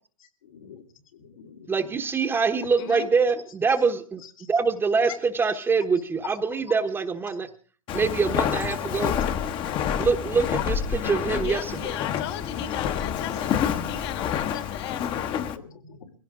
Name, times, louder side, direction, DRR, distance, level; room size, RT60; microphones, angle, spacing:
voice 1, 0.4-0.8 1.1-2.0 4.4-4.5 8.1-8.5 12.2-12.3 12.5-12.7 13.0-13.1 13.4-13.5 15.1-16.1, left 6 dB, 80° left, 3 dB, 3.6 m, -45 dB
voice 2, 1.7-4.2 4.5-7.5 7.9-9.1 10.0-12.0, right 5 dB, 10° right, 6 dB, 1.1 m, -24 dB
Walk footsteps, 7.9-15.6, left 8 dB, 30° left, 1.1 m, -28 dB
voice 3, 11.4-13.5 13.9-15.2, left 11 dB, 50° left, 10 dB, 2.1 m, -36 dB
21.5 x 16.5 x 3.7 m, 0.41 s
hypercardioid pair, 135°, 17 cm